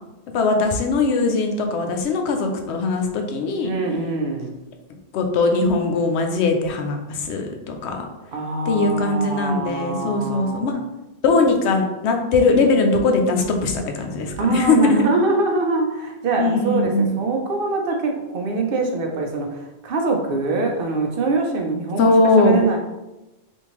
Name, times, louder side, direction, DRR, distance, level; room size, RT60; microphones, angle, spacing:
voice 1, 0.3-3.7 5.1-8.1 8.7-10.7 11.2-15.1 16.4-17.1 22.0-22.6, left 3 dB, 85° left, 3 dB, 0.9 m, -20 dB
voice 2, 3.6-4.5 8.3-10.6 14.4-22.1 22.4-22.8, right 3 dB, 60° right, 3 dB, 0.7 m, -23 dB
3.5 x 2.6 x 3.0 m, 1.0 s
omnidirectional pair, 1.1 m